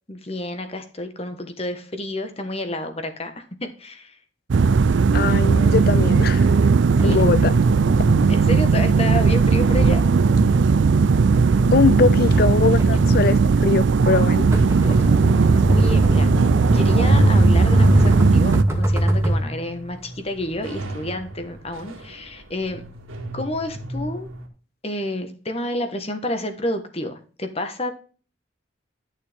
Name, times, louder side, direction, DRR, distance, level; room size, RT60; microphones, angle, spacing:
voice 1, 0.1-4.2 7.0-7.2 8.3-10.0 14.9-15.1 15.5-16.3 16.7-22.8 23.3-24.3 24.8-27.9, left 1 dB, 30° left, 1.3 m, -30 dB
sound 1, 4.5-18.6, right 5 dB, 60° right, 0.4 m, -17 dB
voice 2, 5.1-6.5 7.0-7.6 11.7-14.5, left 5 dB, 50° left, 0.4 m, -21 dB
sound 2, 7.0-19.4, right 1 dB, 15° right, 1.6 m, -22 dB
sound 3, 14.5-24.5, right 1 dB, 90° right, 2.1 m, -38 dB
11.5 x 6.5 x 3.5 m
head